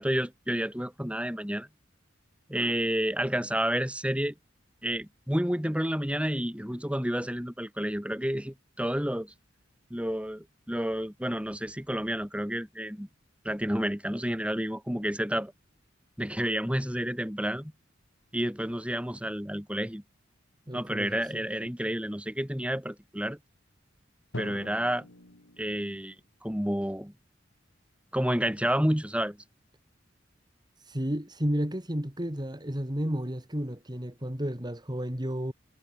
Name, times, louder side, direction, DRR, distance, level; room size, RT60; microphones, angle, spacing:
voice 1, 0.0-1.7 2.5-4.3 4.8-9.3 9.9-13.1 13.4-15.5 16.2-17.7 18.3-20.0 20.7-23.4 24.4-25.1 25.6-26.1 26.4-27.1 28.1-29.4, equal, 5° right, 4.8 m, -30 dB
voice 2, 20.7-21.5 30.8-35.5, equal, 20° right, 3.6 m, -32 dB
Drum, 24.3-26.2, left 1 dB, 90° left, 3.1 m, -43 dB
head